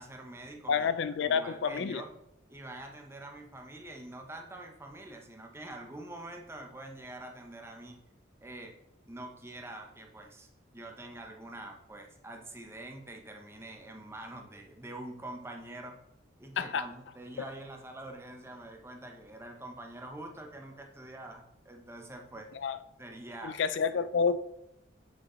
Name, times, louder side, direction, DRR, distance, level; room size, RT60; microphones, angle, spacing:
voice 1, 0.0-0.9 1.2-2.1 2.5-8.0 8.4-8.8 9.1-16.0 16.4-22.6 23.0-23.6, right 1 dB, 15° right, 3 dB, 0.8 m, -45 dB
voice 2, 0.7-2.0 16.6-16.8 22.5-22.8 23.4-24.4, left 6 dB, 65° left, 13 dB, 0.3 m, -29 dB
7.6 x 6.2 x 3.1 m, 0.79 s
head